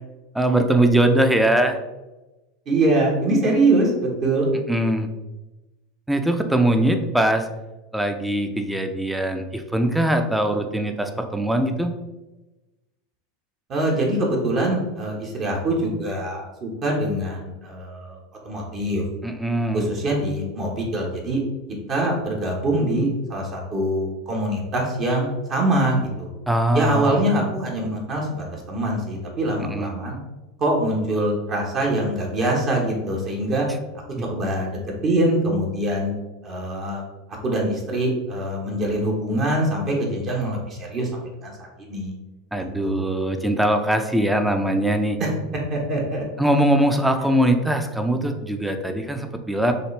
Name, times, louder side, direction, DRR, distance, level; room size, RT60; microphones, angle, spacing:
voice 1, 0.3-1.8 4.7-5.1 6.1-7.5 7.9-11.9 19.2-19.9 26.5-27.2 29.7-29.9 34.2-34.3 42.5-45.2 46.4-49.7, right 1 dB, 5° right, 6 dB, 0.6 m, -21 dB
voice 2, 2.7-4.5 13.7-18.2 18.4-19.0 19.7-21.4 21.9-26.3 26.7-30.2 30.6-33.7 34.2-36.1 36.4-37.0 37.4-42.1 42.8-43.1 45.2-45.3 45.7-46.2, right 1 dB, 40° right, -1 dB, 1.2 m, -24 dB
6.4 x 2.4 x 3.3 m, 1.1 s
hypercardioid pair, 85°, 0 cm